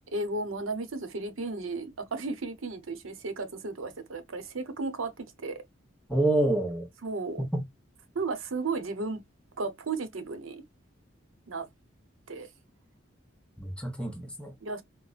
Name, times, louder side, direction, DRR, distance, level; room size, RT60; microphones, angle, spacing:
voice 1, 0.1-5.1 5.4-5.6 7.0-7.4 8.1-9.2 9.6-10.6 11.5-11.7 12.3-12.5 14.6-14.8, right 3 dB, 85° right, 0.8 m, -34 dB
voice 2, 6.1-6.9 7.4-7.7 13.6-14.5, right 1 dB, 5° left, 0.7 m, -27 dB
4.8 x 2.1 x 2.4 m
head